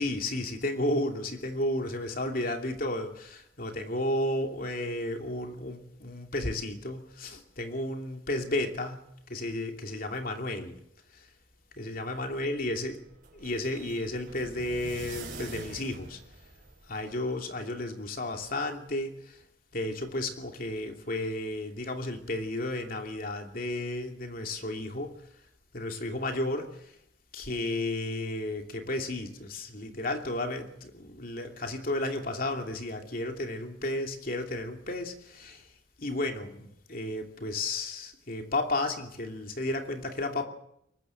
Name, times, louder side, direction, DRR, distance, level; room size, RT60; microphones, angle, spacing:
voice 1, 0.0-9.0 9.3-10.8 11.1-11.3 11.8-13.0 13.4-16.2 16.9-19.4 19.7-25.1 25.7-27.0 27.3-35.7 36.0-40.4, left 1 dB, 50° left, 2.8 m, -33 dB
sound 1, 12.0-17.0, right 3 dB, 45° right, 6.8 m, -46 dB
23.5 x 20.5 x 7.9 m
head